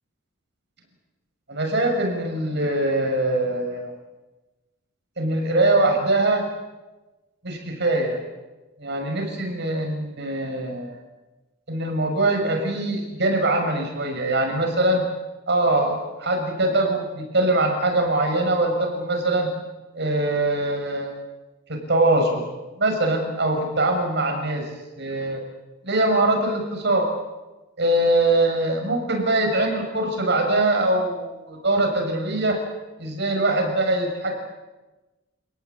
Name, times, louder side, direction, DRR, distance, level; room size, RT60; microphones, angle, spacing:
voice 1, 1.5-3.9 5.2-6.5 7.4-8.2 8.8-11.0 11.7-15.0 15.5-19.5 19.9-21.1 21.7-22.4 22.8-24.7 25.0-25.4 25.8-27.1 27.8-32.6 33.0-34.4, right 2 dB, 60° right, 4 dB, 6.7 m, -22 dB
29.0 x 19.0 x 8.6 m, 1.1 s
head